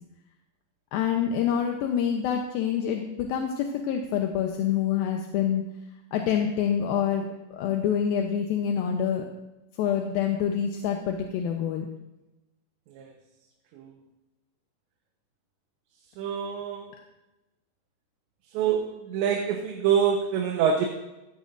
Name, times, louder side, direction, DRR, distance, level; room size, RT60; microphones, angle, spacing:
voice 1, 0.9-5.6 6.1-7.3 7.5-9.2 9.8-11.9, left 8 dB, 75° left, 3 dB, 2.3 m, -26 dB
voice 2, 16.2-16.9 18.5-20.9, right 7 dB, 85° right, 1 dB, 3.4 m, -25 dB
15.5 x 14.0 x 2.6 m, 0.98 s
omnidirectional pair, 5.0 m